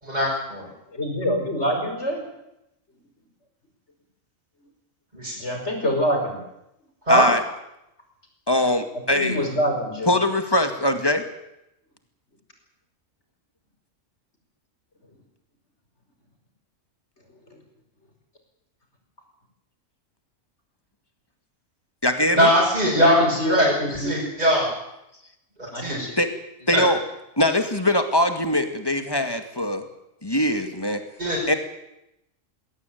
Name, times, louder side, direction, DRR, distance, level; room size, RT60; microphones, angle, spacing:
voice 1, 0.0-0.6 5.1-5.3 7.1-7.2 22.3-24.7 25.8-26.0 26.7-26.8 31.2-31.6, equal, 30° right, -6 dB, 7.0 m, -21 dB
voice 2, 0.9-2.2 5.4-6.4 9.1-10.1 23.0-24.2 25.7-26.2, equal, 55° left, 3 dB, 5.8 m, -25 dB
voice 3, 7.1-7.4 8.5-9.4 10.1-11.2 22.0-22.5 26.2-26.3 26.7-27.0 27.4-29.8 30.2-31.0 31.5-31.6, left 1 dB, 20° left, 7 dB, 2.1 m, -22 dB
22.0 x 16.5 x 9.4 m, 0.87 s
omnidirectional pair, 1.4 m